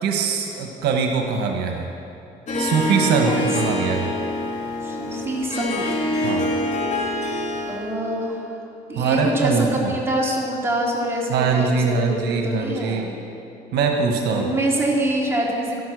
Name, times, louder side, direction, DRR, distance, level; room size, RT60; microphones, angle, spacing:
voice 1, 0.0-1.9 2.6-4.1 6.2-6.5 8.9-9.9 11.3-13.1 13.7-14.5, right 5 dB, 75° right, 2 dB, 1.4 m, -22 dB
Harp, 2.5-7.9, left 1 dB, 45° left, 2.4 m, -25 dB
voice 2, 4.8-6.1 7.7-8.4 8.9-13.1 14.3-15.8, right 1 dB, 15° right, -3 dB, 3.0 m, -25 dB
12.5 x 11.5 x 6.2 m, 2.7 s
cardioid pair, 110°, 17 cm